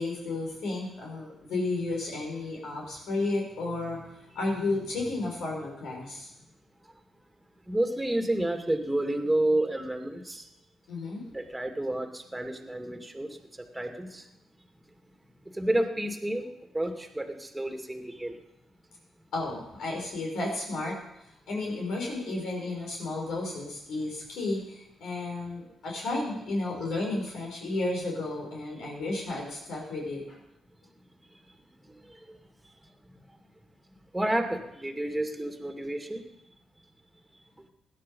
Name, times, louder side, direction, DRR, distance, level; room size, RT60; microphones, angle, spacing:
voice 1, 0.0-6.3 10.9-11.2 19.3-20.9 21.5-30.4, left 2 dB, 75° left, -1 dB, 5.8 m, -32 dB
voice 2, 7.7-10.4 11.3-13.3 13.7-14.2 15.5-16.5 16.7-18.4 32.3-32.4 34.1-36.2, right 1 dB, 10° right, 5 dB, 2.5 m, -30 dB
17.0 x 11.0 x 5.6 m, 0.84 s
supercardioid pair, 60°, 0 cm